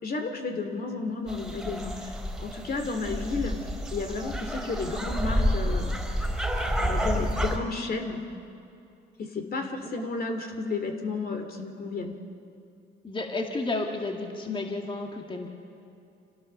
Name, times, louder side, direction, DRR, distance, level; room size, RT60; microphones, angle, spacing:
voice 1, 0.0-3.6 3.9-6.0 6.8-8.2 9.2-12.1, left 3 dB, 50° left, 5 dB, 2.4 m, -32 dB
sound 1, 1.3-7.6, equal, ahead, 4.3 m, -29 dB
voice 2, 13.0-15.5, left 2 dB, 25° left, 2 dB, 2.1 m, -32 dB
27.0 x 16.0 x 6.9 m, 2.6 s
cardioid pair, 90°, 20 cm